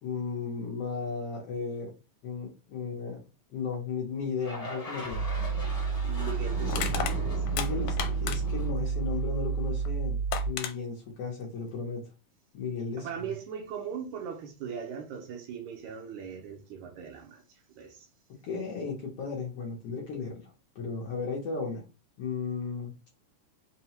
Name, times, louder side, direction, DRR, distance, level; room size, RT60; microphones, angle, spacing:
voice 1, 0.0-1.9 2.2-3.2 3.5-5.3 7.5-10.2 10.5-12.0 12.5-13.1 18.4-21.8 22.2-22.9, left 5 dB, 70° left, 1.5 m, -35 dB
sound 1, 4.4-9.7, left 1 dB, 20° left, 1.0 m, -40 dB
sound 2, 5.1-10.5, right 5 dB, 55° right, 1.1 m, -30 dB
voice 2, 6.0-7.5 10.5-10.6 13.0-18.1, right 7 dB, 75° right, 2.0 m, -40 dB
Crushing, 6.7-8.7 9.8-9.9 10.3-10.7, left 8 dB, 85° left, 2.0 m, -33 dB
5.5 x 2.2 x 2.8 m
omnidirectional pair, 3.5 m